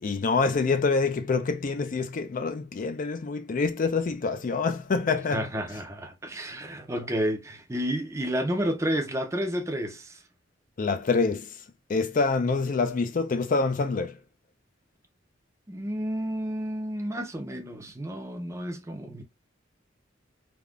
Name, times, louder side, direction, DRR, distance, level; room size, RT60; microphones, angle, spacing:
voice 1, 0.0-5.5 10.8-11.5 11.9-14.2, left 4 dB, 45° left, 0.4 m, -26 dB
voice 2, 5.3-10.2 15.7-19.2, equal, 15° right, 0.5 m, -31 dB
3.4 x 2.1 x 2.4 m
head